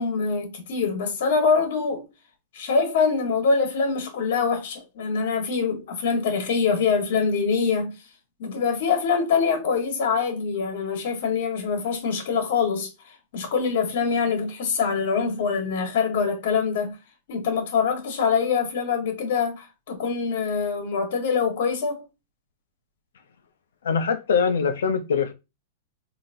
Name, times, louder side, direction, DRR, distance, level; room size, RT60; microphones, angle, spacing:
voice 1, 0.0-2.0 2.5-7.9 8.4-17.0 17.3-22.0, left 5 dB, 65° left, 1.3 m, -24 dB
voice 2, 23.8-25.3, left 6 dB, 85° left, 0.6 m, -23 dB
3.9 x 2.8 x 2.6 m
hypercardioid pair, 135°, 0 cm